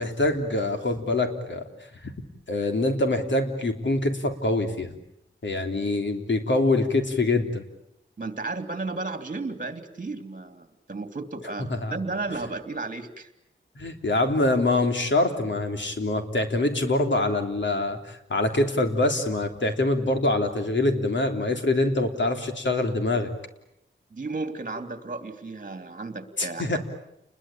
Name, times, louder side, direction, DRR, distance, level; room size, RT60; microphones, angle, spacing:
voice 1, 0.0-1.7 2.5-4.9 5.4-7.6 11.7-11.9 13.7-23.3 26.4-26.8, left 2 dB, 65° left, 5 dB, 3.4 m, -24 dB
voice 2, 8.2-13.3 24.1-26.8, right 3 dB, 40° right, 8 dB, 2.9 m, -33 dB
30.0 x 22.0 x 8.7 m, 0.80 s
wide cardioid pair, 110°, 20 cm